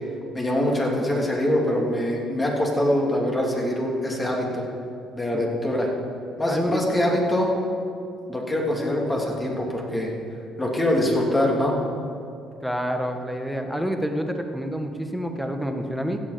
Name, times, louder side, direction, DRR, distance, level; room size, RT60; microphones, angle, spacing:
voice 1, 0.3-4.6 5.2-5.9 6.4-7.5 8.3-10.1 10.6-11.8, left 1 dB, 20° left, -2 dB, 2.9 m, -24 dB
voice 2, 6.5-6.8 12.6-16.2, equal, ahead, 5 dB, 1.5 m, -28 dB
16.0 x 7.5 x 5.2 m, 2.5 s
supercardioid pair, 65°, 0 cm